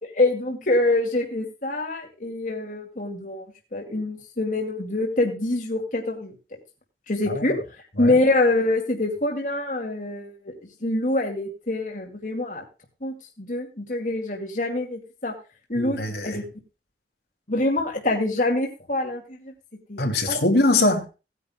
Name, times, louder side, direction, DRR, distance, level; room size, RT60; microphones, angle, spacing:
voice 1, 0.0-3.5 3.7-6.3 7.1-7.6 8.0-10.5 10.8-12.6 13.0-15.3 15.7-16.0 16.2-16.4 17.5-19.5 19.9-20.4, left 2 dB, 45° left, 2.3 m, -25 dB
voice 2, 7.2-7.6 8.0-8.2 15.7-16.4 20.0-21.1, left 2 dB, 70° left, 2.6 m, -23 dB
18.5 x 9.9 x 2.3 m
head